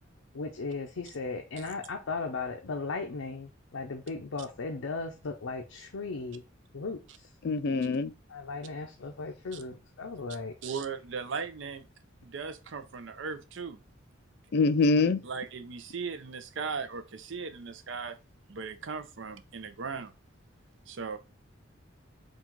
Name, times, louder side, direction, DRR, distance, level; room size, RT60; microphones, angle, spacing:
voice 1, 0.3-6.4 6.7-7.3 8.3-10.5 14.5-15.1, left 4 dB, 90° left, 0.6 m, -37 dB
voice 2, 7.4-8.1 14.5-15.2, left 3 dB, 50° left, 0.3 m, -24 dB
voice 3, 10.6-11.9 12.2-13.8 15.2-18.2 18.5-20.1 20.9-21.2, right 5 dB, 65° right, 0.5 m, -37 dB
3.9 x 2.3 x 4.5 m
head